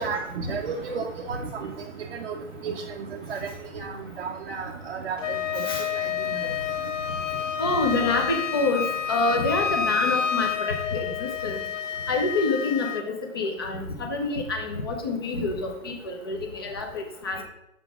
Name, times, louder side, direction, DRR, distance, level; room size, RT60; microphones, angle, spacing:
voice 1, 0.0-1.4 2.2-2.3 2.6-2.7 3.3-3.4 3.8-3.9 4.2-5.2 5.6-5.7 6.4-6.5, right 5 dB, 50° right, 1 dB, 0.6 m, -32 dB
Wind instrument woodwind instrument, 5.2-13.1, left 8 dB, 65° left, 0.7 m, -29 dB
voice 2, 7.6-11.6 12.1-17.4, left 3 dB, 20° left, 2 dB, 0.6 m, -27 dB
7.1 x 3.8 x 4.6 m, 0.86 s
hypercardioid pair, 150°, 41 cm